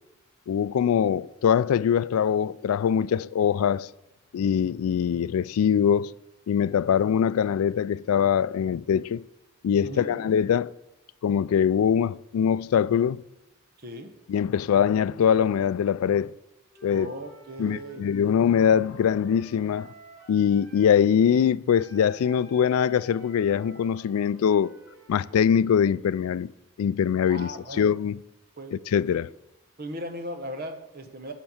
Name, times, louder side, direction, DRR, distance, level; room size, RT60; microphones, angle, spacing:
voice 1, 0.5-3.9 4.3-6.1 6.5-9.2 9.6-10.7 11.2-13.2 14.3-16.3 16.8-17.1 17.6-19.9 20.3-24.7 25.1-26.5 26.8-28.2 28.7-29.3, left 8 dB, 90° left, 0.3 m, -23 dB
voice 2, 9.8-10.2 13.8-14.1 16.9-18.1 27.3-27.8 28.6-28.8 29.1-29.2 29.8-31.3, right 1 dB, 45° right, 1.0 m, -37 dB
Wind instrument woodwind instrument, 16.7-20.9 21.7-25.6, equal, 5° left, 4.5 m, -51 dB
12.0 x 4.5 x 7.0 m
head